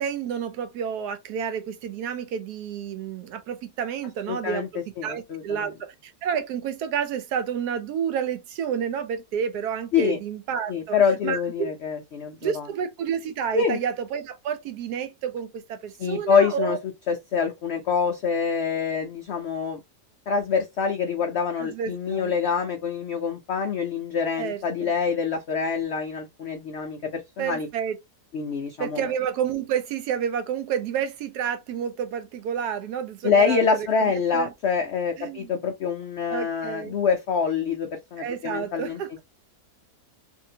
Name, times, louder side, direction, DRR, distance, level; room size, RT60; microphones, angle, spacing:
voice 1, 0.0-4.7 5.0-11.0 11.2-11.7 12.4-16.8 21.6-22.3 24.4-24.9 27.4-28.0 28.8-34.5 35.2-35.5 36.3-37.0 38.2-39.2, right 8 dB, 80° right, 1.1 m, -30 dB
voice 2, 4.3-5.7 9.9-10.2 10.7-12.7 13.5-13.8 16.0-16.8 17.1-19.8 20.3-27.7 28.3-29.1 33.2-39.0, left 6 dB, 80° left, 0.6 m, -25 dB
2.7 x 2.5 x 2.7 m
omnidirectional pair, 1.7 m